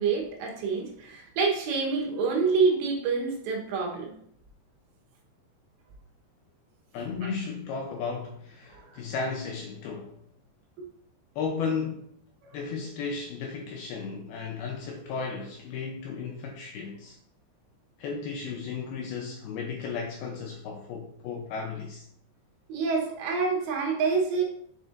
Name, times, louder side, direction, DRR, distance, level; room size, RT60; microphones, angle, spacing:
voice 1, 0.0-4.1 7.2-7.3 8.7-9.0 10.8-10.9 12.4-12.5 22.7-24.4, right 4 dB, 80° right, 3.3 m, -27 dB
voice 2, 6.9-10.1 11.4-12.1 12.5-17.2 18.0-22.1, left 5 dB, 80° left, 2.2 m, -34 dB
7.2 x 6.6 x 2.5 m
omnidirectional pair, 5.1 m